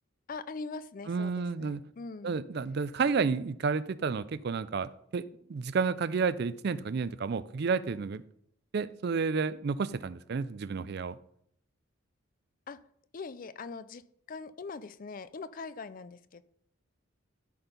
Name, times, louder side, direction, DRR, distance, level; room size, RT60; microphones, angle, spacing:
voice 1, 0.3-2.4 12.7-12.8 13.1-14.0 14.3-16.4, left 4 dB, 40° left, 15 dB, 0.4 m, -42 dB
voice 2, 1.1-1.8 2.2-5.2 5.5-8.2 8.7-11.2, right 5 dB, 50° right, 16 dB, 0.4 m, -31 dB
13.0 x 4.5 x 5.2 m, 0.70 s
head